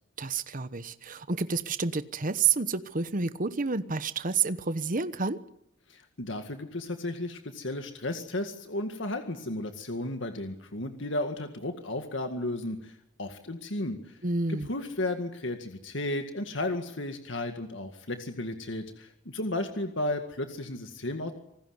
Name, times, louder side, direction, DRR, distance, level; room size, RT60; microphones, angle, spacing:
voice 1, 0.2-5.4 14.2-14.7, right 5 dB, 45° right, 12 dB, 1.1 m, -29 dB
voice 2, 5.9-14.2 14.5-21.3, left 1 dB, 65° left, 6 dB, 2.0 m, -34 dB
27.0 x 19.5 x 8.0 m, 0.77 s
head